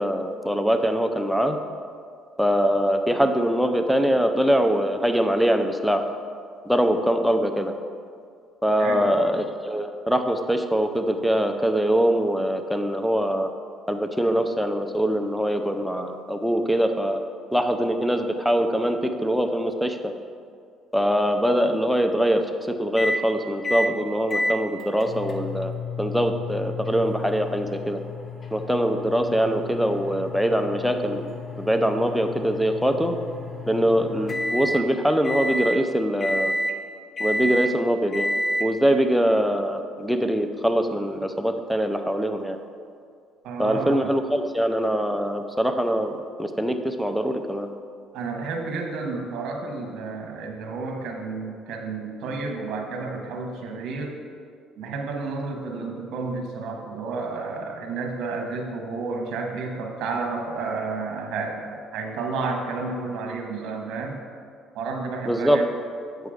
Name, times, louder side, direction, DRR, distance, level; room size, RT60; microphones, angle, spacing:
voice 1, 0.0-1.6 2.4-6.0 6.6-7.7 8.6-13.5 13.9-17.2 17.5-20.1 20.9-22.4 22.7-25.7 26.0-28.0 28.5-31.3 31.6-33.1 33.7-36.5 37.2-38.3 38.6-42.6 43.6-47.7 65.3-65.6, equal, ahead, 6 dB, 0.6 m, -23 dB
voice 2, 8.8-9.2 43.4-44.1 48.1-54.2 54.8-64.2 64.7-65.6, right 4 dB, 70° right, 2 dB, 1.1 m, -31 dB
sound 1, 23.0-23.2 23.6-23.9 24.3-34.8 35.2-35.8 36.2-36.8 37.2-37.7 38.1-38.7, left 1 dB, 35° left, 0.9 m, -30 dB
7.9 x 4.8 x 4.9 m, 2.3 s
supercardioid pair, 85°, 0 cm